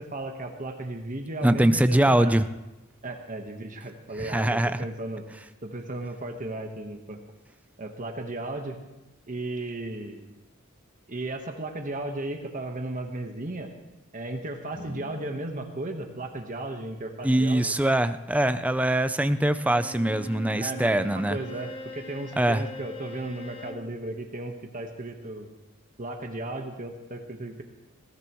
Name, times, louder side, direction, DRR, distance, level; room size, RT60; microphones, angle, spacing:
voice 1, 0.0-2.4 3.0-5.2 5.6-7.2 7.8-8.8 9.3-10.3 11.1-13.7 14.1-17.7 20.6-25.5 26.0-27.6, right 2 dB, 40° right, 4 dB, 1.3 m, -35 dB
voice 2, 1.4-2.5 4.2-4.8 17.2-21.4 22.4-22.6, right 1 dB, 5° right, 11 dB, 0.5 m, -23 dB
sound 1, 14.7-16.9, equal, 45° left, 4.3 m, -47 dB
Bowed string instrument, 19.6-23.9, equal, 25° left, 1.1 m, -41 dB
20.5 x 17.0 x 3.1 m, 1.0 s
head